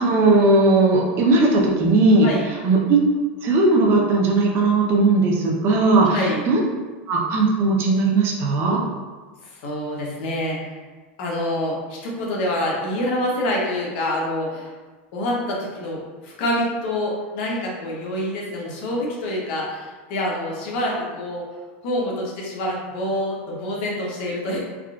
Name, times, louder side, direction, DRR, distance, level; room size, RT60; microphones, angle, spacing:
voice 1, 0.0-2.3 2.6-3.0 3.4-6.2 6.5-6.6 7.1-8.8, right 3 dB, 35° right, -1 dB, 0.6 m, -17 dB
voice 2, 6.0-6.5 9.4-10.8 11.2-14.7 15.1-21.5 21.8-24.6, left 1 dB, 60° left, -2 dB, 0.9 m, -26 dB
3.6 x 2.4 x 2.3 m, 1.4 s
supercardioid pair, 145°, 7 cm